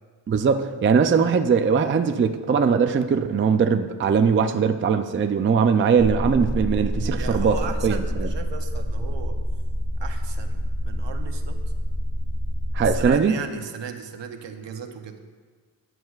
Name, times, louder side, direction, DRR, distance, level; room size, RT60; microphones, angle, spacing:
voice 1, 0.3-7.6 7.8-8.3 12.7-13.3, right 6 dB, 30° right, 8 dB, 0.3 m, -20 dB
sound 1, 6.0-13.1, equal, 5° right, 2.1 m, -27 dB
voice 2, 7.1-9.4 10.0-11.6 12.8-15.2, right 7 dB, 75° right, 6 dB, 0.9 m, -36 dB
14.0 x 9.2 x 2.4 m, 1.5 s
wide cardioid pair, 145°, 44 cm